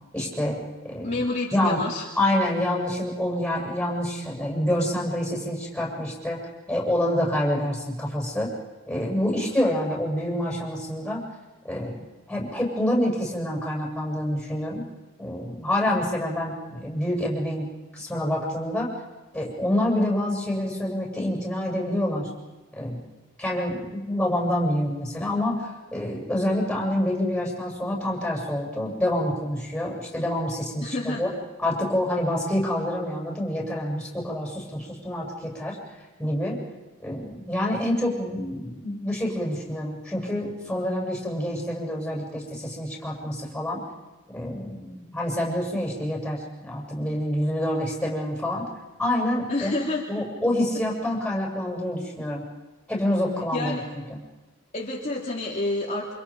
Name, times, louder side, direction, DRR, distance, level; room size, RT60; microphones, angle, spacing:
voice 1, 0.1-0.6 0.9-1.1 1.5-1.8 2.2-6.4 6.7-8.5 8.9-11.2 11.7-14.8 15.2-17.7 18.0-18.9 19.3-22.3 22.8-23.0 23.4-31.3 31.6-35.8 36.2-36.6 37.0-43.8 44.3-48.6 49.0-49.7 50.1-52.4 52.9-53.7, left 1 dB, 5° left, -4 dB, 7.4 m, -27 dB
voice 2, 1.0-2.1 30.8-31.3 49.5-50.0 53.5-53.9 54.7-56.1, left 2 dB, 35° left, -4 dB, 2.8 m, -28 dB
28.5 x 27.5 x 5.3 m, 1.1 s
head